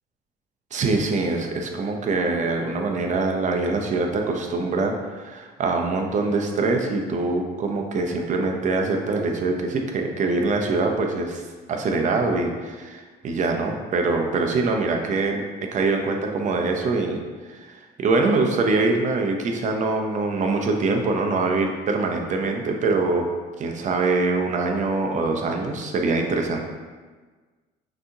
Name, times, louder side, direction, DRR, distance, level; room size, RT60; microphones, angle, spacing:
voice 1, 0.7-11.4 11.7-23.3 23.6-26.6, right 3 dB, 45° right, 3 dB, 0.7 m, -24 dB
6.0 x 2.9 x 2.7 m, 1.4 s
cardioid pair, 110°, 17 cm